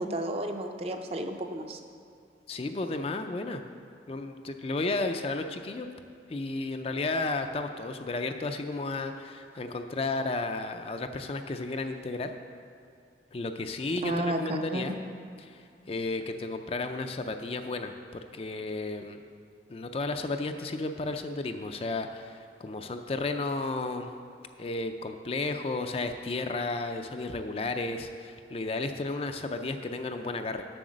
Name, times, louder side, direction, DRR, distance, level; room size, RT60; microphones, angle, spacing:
voice 1, 0.0-1.8 14.0-14.8, right 1 dB, 35° right, 5 dB, 0.5 m, -32 dB
voice 2, 2.5-3.6 4.1-5.9 6.3-12.3 13.3-15.0 15.4-19.2 19.7-24.1 24.6-30.6, left 3 dB, 30° left, 6 dB, 0.4 m, -33 dB
7.8 x 6.7 x 6.2 m, 2.4 s
head